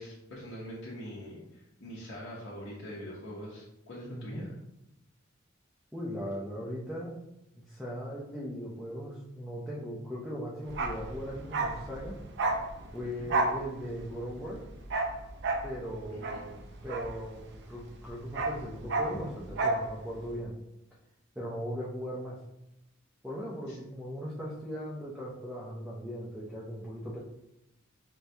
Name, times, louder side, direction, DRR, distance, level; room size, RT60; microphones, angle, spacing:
voice 1, 0.0-4.5 13.1-13.3 16.1-16.4 19.1-19.2 23.7-23.8, equal, 60° left, -6 dB, 0.8 m, -43 dB
voice 2, 4.1-4.5 5.9-7.1 7.6-12.2 12.9-14.6 15.6-19.3 19.6-20.5 21.4-22.4 23.2-27.2, equal, 5° right, -6 dB, 0.5 m, -38 dB
Bark, 10.7-17.7 18.0-19.9 20.1-20.3, right 2 dB, 55° right, 0.4 m, -32 dB
4.5 x 2.2 x 2.7 m, 0.86 s
head